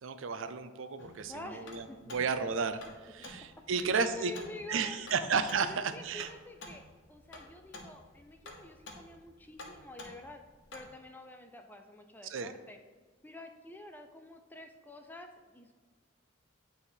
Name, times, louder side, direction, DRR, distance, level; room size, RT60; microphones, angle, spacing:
voice 1, 0.0-4.3 4.7-6.3 12.2-12.5, right 5 dB, 65° right, 10 dB, 0.4 m, -33 dB
sound 1, 1.0-10.9, left 2 dB, 60° left, 1.1 m, -51 dB
voice 2, 1.3-2.1 3.2-3.3 3.7-5.3 5.6-6.8 7.1-10.4 10.7-12.8 13.2-15.7, left 1 dB, 10° left, 5 dB, 0.4 m, -48 dB
9.2 x 3.5 x 4.4 m, 1.4 s
head